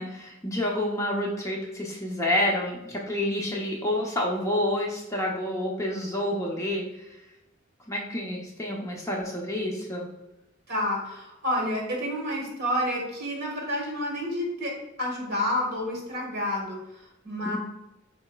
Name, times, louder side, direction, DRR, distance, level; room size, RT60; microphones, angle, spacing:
voice 1, 0.0-6.8 7.9-10.1 17.4-17.6, left 1 dB, 15° left, -2 dB, 0.6 m, -28 dB
voice 2, 10.7-16.8 17.2-17.6, left 1 dB, 55° right, -1 dB, 1.4 m, -29 dB
4.8 x 4.1 x 2.2 m, 0.93 s
head